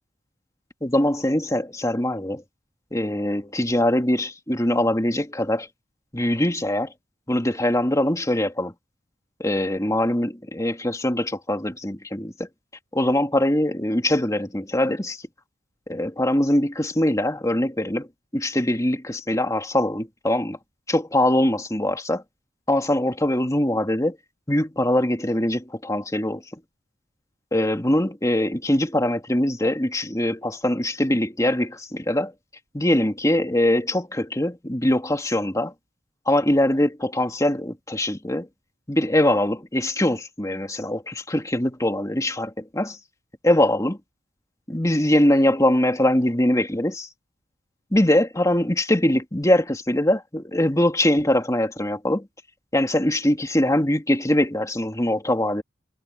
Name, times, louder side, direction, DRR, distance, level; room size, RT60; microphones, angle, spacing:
voice 1, 0.8-2.4 2.9-5.7 6.1-6.9 7.3-8.7 9.4-12.5 12.9-15.2 15.9-18.1 18.3-20.6 20.9-22.2 22.7-24.2 24.5-26.4 27.5-32.3 32.7-35.7 36.3-38.5 38.9-43.0 43.4-44.0 44.7-47.1 47.9-52.3 52.7-55.6, left 1 dB, 20° left, 2.6 m, -22 dB
head